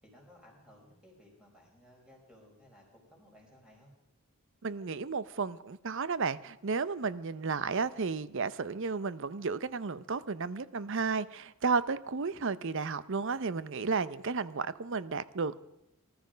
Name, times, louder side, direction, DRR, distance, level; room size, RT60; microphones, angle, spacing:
voice 1, 0.0-3.9, left 1 dB, 5° right, -2 dB, 5.0 m, -58 dB
voice 2, 4.6-15.6, right 4 dB, 60° right, 16 dB, 0.7 m, -33 dB
20.0 x 13.0 x 5.1 m, 0.89 s
head